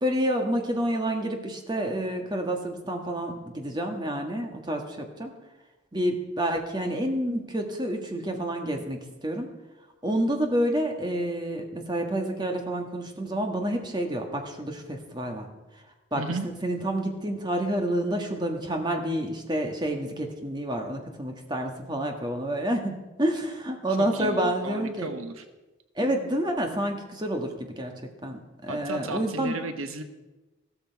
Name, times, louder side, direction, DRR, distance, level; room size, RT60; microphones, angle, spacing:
voice 1, 0.0-5.3 5.9-9.5 10.0-15.5 15.7-15.8 16.1-25.1 25.9-27.9 28.2-29.6, right 1 dB, 20° right, 3 dB, 1.5 m, -29 dB
voice 2, 16.1-16.5 24.0-25.4 28.7-30.0, right 2 dB, 85° right, 7 dB, 1.2 m, -34 dB
14.5 x 13.5 x 4.7 m, 1.1 s
head